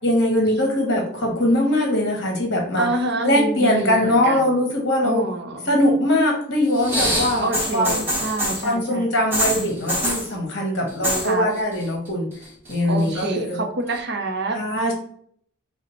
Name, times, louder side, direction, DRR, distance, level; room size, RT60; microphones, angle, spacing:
voice 1, 0.0-2.9 3.2-5.2 5.7-8.0 8.6-12.3 12.7-13.6 14.5-14.9, left 1 dB, 55° left, 0 dB, 1.4 m, -21 dB
voice 2, 2.7-4.5 5.0-5.7 7.4-9.1 11.2-11.5 12.9-14.6, right 2 dB, 55° right, 4 dB, 0.6 m, -27 dB
sound 1, 6.7-8.7 9.3-10.3 10.9-11.3 11.6-12.1 12.4-13.2 14.0-14.1, equal, 10° right, 0.9 m, -25 dB
5.0 x 2.1 x 4.2 m, 0.63 s
head